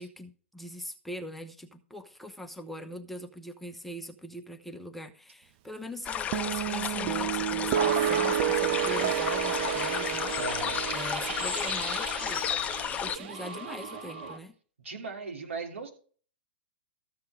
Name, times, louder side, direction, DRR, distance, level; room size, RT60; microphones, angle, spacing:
voice 1, 0.0-10.3 10.9-12.4 13.0-14.5, equal, ahead, 0.9 m, -42 dB
sound 1, 6.0-13.2, left 9 dB, 20° left, 0.5 m, -33 dB
Guitar, 6.3-12.9, right 11 dB, 40° right, 0.5 m, -31 dB
sound 2, 7.7-14.4, right 6 dB, 60° right, 1.7 m, -35 dB
voice 2, 10.3-11.0 14.8-15.9, right 4 dB, 80° right, 3.0 m, -38 dB
14.0 x 6.7 x 4.9 m
hypercardioid pair, 115°, 7 cm